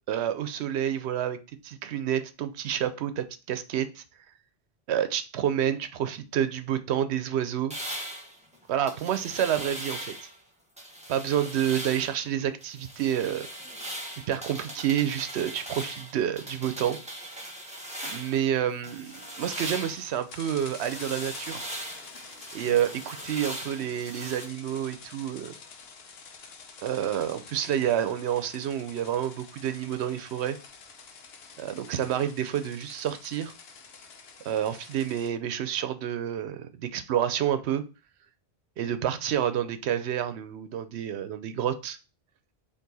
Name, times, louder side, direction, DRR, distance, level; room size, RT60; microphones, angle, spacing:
voice 1, 0.1-1.4 1.6-4.0 4.9-7.7 8.7-10.1 11.1-13.5 14.3-17.0 18.0-21.6 22.5-25.5 26.8-30.6 31.6-33.5 34.4-37.8 38.8-42.0, right 10 dB, 85° right, 0.9 m, -29 dB
sound 1, 7.7-10.4 10.8-12.2 12.6-18.5 18.8-24.5, right 1 dB, 5° right, 1.0 m, -39 dB
sound 2, 19.0-35.3, left 5 dB, 70° left, 0.9 m, -48 dB
4.6 x 2.9 x 4.0 m
omnidirectional pair, 1.1 m